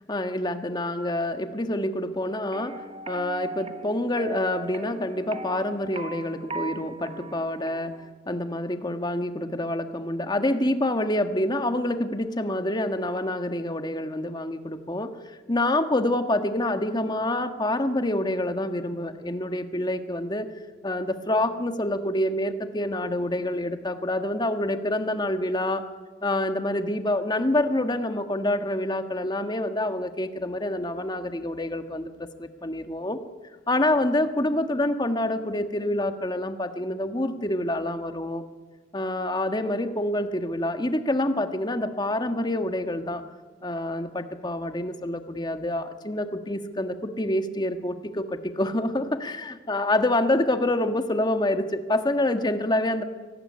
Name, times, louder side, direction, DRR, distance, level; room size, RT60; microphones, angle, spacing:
voice 1, 0.1-2.8 3.1-7.9 8.3-20.5 20.8-25.8 26.2-33.2 33.7-38.4 38.9-43.2 43.6-53.0, left 1 dB, 25° left, 8 dB, 1.6 m, -27 dB
sound 1, 2.5-8.1, right 2 dB, 35° right, 1.4 m, -38 dB
25.0 x 19.0 x 9.6 m, 1.4 s
head